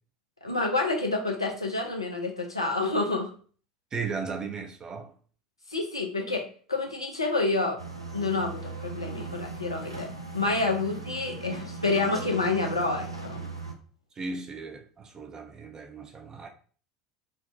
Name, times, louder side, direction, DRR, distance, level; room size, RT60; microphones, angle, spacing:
voice 1, 0.4-3.3 5.7-7.8 8.1-10.1 10.3-13.4, left 3 dB, 85° left, 0.5 m, -28 dB
voice 2, 3.9-5.1 14.1-16.5, right 4 dB, 25° right, 0.5 m, -36 dB
sound 1, 7.8-13.7, right 3 dB, 90° right, 0.4 m, -38 dB
3.1 x 2.1 x 2.6 m
figure-of-eight pair, 75°, 3 cm